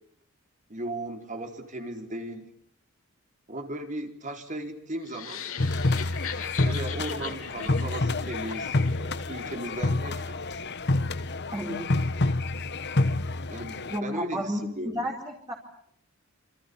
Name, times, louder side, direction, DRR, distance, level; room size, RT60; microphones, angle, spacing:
voice 1, 0.7-2.5 3.5-5.5 6.6-10.3 13.5-15.1, right 1 dB, 35° right, 4 dB, 4.5 m, -36 dB
sound 1, 5.0-9.3, left 8 dB, 80° left, 3.4 m, -40 dB
sound 2, 5.6-14.0, left 2 dB, 55° left, 1.3 m, -28 dB
voice 2, 11.5-11.9 13.9-15.5, equal, 20° right, -1 dB, 4.5 m, -32 dB
28.0 x 27.5 x 7.2 m, 0.69 s
head